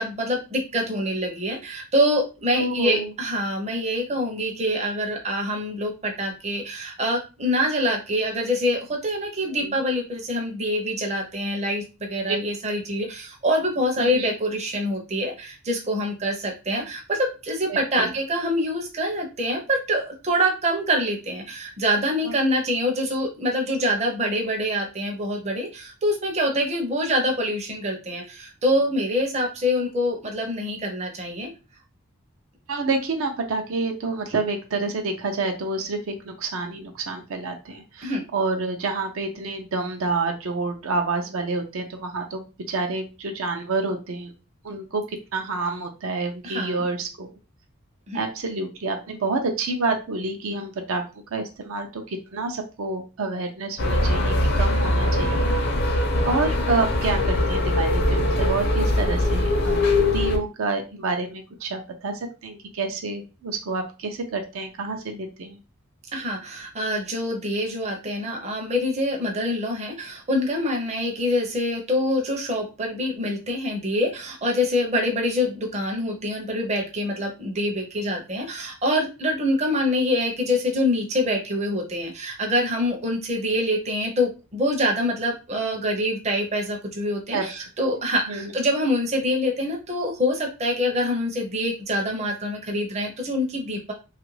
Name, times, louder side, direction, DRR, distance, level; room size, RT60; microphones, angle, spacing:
voice 1, 0.0-31.5 38.0-38.2 46.4-46.8 48.1-48.2 66.1-93.9, equal, 30° right, 1 dB, 0.6 m, -25 dB
voice 2, 2.6-3.1 9.6-9.8 14.0-14.3 17.7-18.1 22.2-22.3 32.7-44.3 44.6-47.3 48.1-51.0 51.3-55.5 56.2-65.6 87.3-87.4 88.3-88.5, right 3 dB, 70° right, 4 dB, 0.5 m, -28 dB
sound 1, 53.8-60.4, left 1 dB, 50° left, 0.6 m, -22 dB
2.9 x 2.4 x 3.1 m, 0.31 s
head